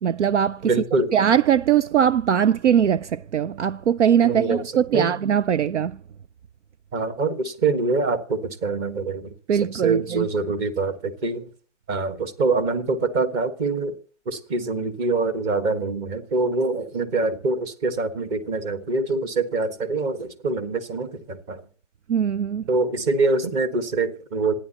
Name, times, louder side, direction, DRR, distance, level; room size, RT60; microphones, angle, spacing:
voice 1, 0.0-0.7 1.1-6.0 9.5-10.3 22.1-22.6, right 9 dB, 65° right, 0.6 m, -21 dB
voice 2, 0.6-1.1 4.2-4.6 4.9-5.1 6.9-9.3 9.7-11.5 11.9-13.9 14.3-21.6 22.7-24.5, right 3 dB, 20° right, 1.5 m, -24 dB
27.0 x 10.0 x 2.9 m
hypercardioid pair, 150°, 39 cm